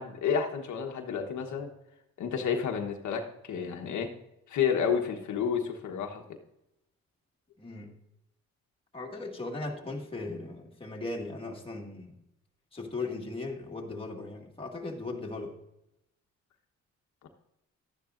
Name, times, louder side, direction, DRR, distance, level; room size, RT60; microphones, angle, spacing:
voice 1, 0.0-1.7 2.2-4.1 4.5-6.2, left 7 dB, 70° left, 3 dB, 1.3 m, -30 dB
voice 2, 7.6-7.9 8.9-12.1 12.7-15.5, left 3 dB, 20° left, 0 dB, 2.0 m, -38 dB
12.5 x 9.9 x 2.6 m, 0.84 s
cardioid pair, 90°, 30 cm